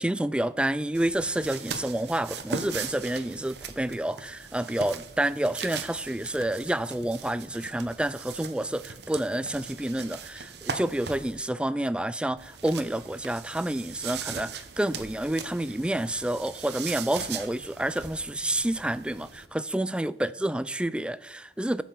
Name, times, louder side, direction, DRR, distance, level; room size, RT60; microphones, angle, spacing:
voice 1, 0.0-21.8, right 1 dB, 5° right, 0.3 m, -29 dB
sound 1, 0.9-11.4 12.4-19.5, right 6 dB, 65° right, 1.0 m, -40 dB
11.5 x 6.1 x 6.8 m
head